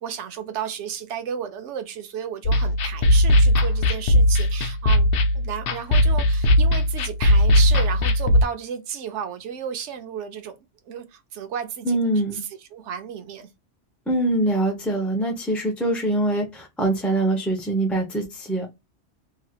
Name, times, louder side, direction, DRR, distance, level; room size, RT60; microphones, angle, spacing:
voice 1, 0.0-5.1 5.3-10.6 10.8-12.0 12.3-13.5, right 8 dB, 75° right, 1.0 m, -33 dB
sound 1, 2.4-8.4, left 1 dB, 60° left, 0.7 m, -18 dB
voice 2, 11.8-12.4 14.1-18.7, right 1 dB, ahead, 0.6 m, -23 dB
3.1 x 2.8 x 2.3 m
omnidirectional pair, 1.2 m